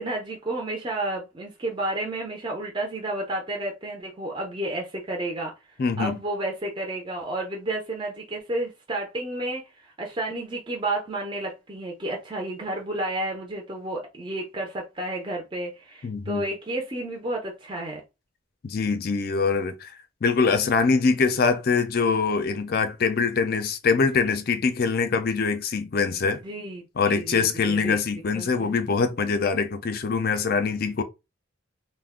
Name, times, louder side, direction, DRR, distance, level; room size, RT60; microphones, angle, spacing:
voice 1, 0.0-5.5 6.0-18.0 26.4-28.0 28.3-28.8, right 1 dB, 25° right, 0.5 m, -31 dB
voice 2, 5.8-6.2 16.0-16.4 18.6-19.9 20.2-26.4 27.0-31.0, left 5 dB, 45° left, 0.4 m, -23 dB
2.4 x 2.1 x 3.6 m
head